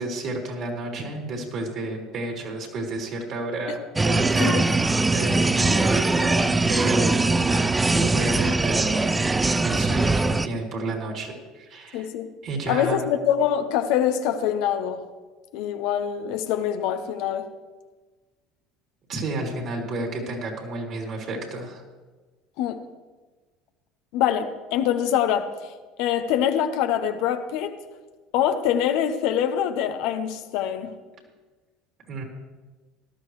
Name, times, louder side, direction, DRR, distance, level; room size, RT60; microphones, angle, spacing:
voice 1, 0.0-12.1 12.4-13.0 19.1-21.8 32.1-32.2, right 2 dB, 55° right, 3.5 m, -31 dB
sound 1, 4.0-10.5, right 3 dB, 15° right, 0.5 m, -21 dB
voice 2, 11.9-12.3 12.7-15.0 15.5-17.5 22.6-22.8 24.1-25.5 26.0-27.8 28.3-30.9, left 9 dB, 70° left, 1.0 m, -24 dB
18.0 x 12.5 x 3.3 m
hypercardioid pair, 80°, 0 cm